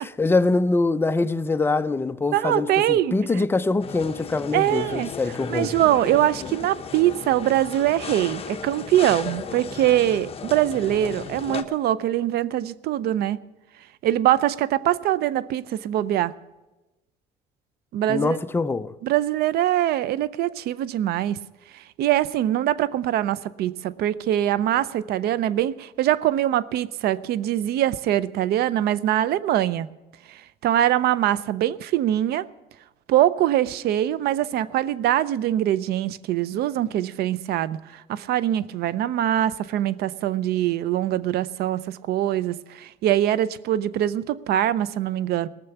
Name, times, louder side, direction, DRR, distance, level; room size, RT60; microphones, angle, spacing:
voice 1, 0.2-5.7 18.1-18.9, left 3 dB, 15° left, 0.5 m, -23 dB
voice 2, 2.3-3.4 4.5-5.1 5.5-13.4 14.0-16.3 17.9-18.4 19.0-21.4 21.7-29.9 30.3-32.5 33.1-45.5, right 12 dB, 70° right, 0.5 m, -23 dB
sound 1, 3.8-11.6, left 6 dB, 35° left, 1.0 m, -35 dB
18.5 x 6.8 x 7.0 m
cardioid pair, 110°, 17 cm